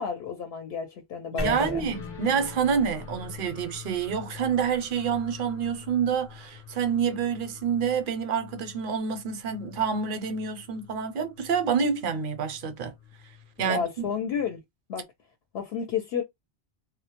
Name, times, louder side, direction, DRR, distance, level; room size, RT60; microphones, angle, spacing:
voice 1, 0.0-1.8 13.6-14.6 14.9-15.1 15.5-16.2, left 6 dB, 80° left, 0.8 m, -31 dB
voice 2, 1.3-12.9 13.6-13.8, right 6 dB, 60° right, 0.7 m, -27 dB
sound 1, 1.4-5.3, left 1 dB, 20° left, 0.5 m, -39 dB
sound 2, 1.9-14.6, left 9 dB, 55° left, 0.7 m, -47 dB
2.1 x 2.0 x 2.8 m
omnidirectional pair, 1.0 m